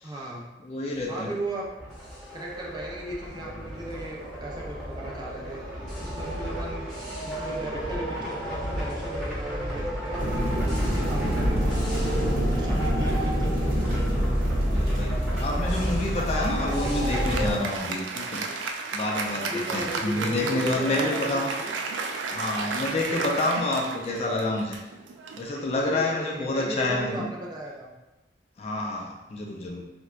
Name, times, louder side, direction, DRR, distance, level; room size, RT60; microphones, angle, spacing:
voice 1, 0.0-0.5 1.1-1.7 2.3-5.6 6.0-6.8 7.2-10.6 10.9-12.2 12.5-13.8 19.4-21.7 25.9-27.9, right 1 dB, 25° right, -4 dB, 0.5 m, -36 dB
voice 2, 0.6-1.3 14.7-21.5 22.3-24.8 25.4-27.3 28.6-29.8, left 2 dB, 35° left, 0 dB, 0.3 m, -28 dB
sound 1, 1.4-17.5, equal, 5° left, 0.9 m, -29 dB
sound 2, 10.2-17.6, equal, 55° right, 1.0 m, -30 dB
Applause, 16.5-26.3, right 4 dB, 85° right, 0.3 m, -33 dB
3.8 x 2.2 x 2.3 m, 1.0 s
head